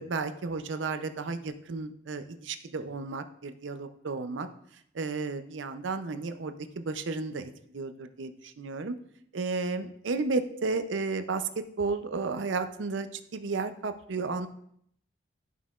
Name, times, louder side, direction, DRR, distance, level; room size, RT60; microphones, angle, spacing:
voice 1, 0.0-4.5 4.9-9.0 9.3-14.5, right 3 dB, 75° right, 9 dB, 0.5 m, -33 dB
11.5 x 5.5 x 2.4 m, 0.68 s
head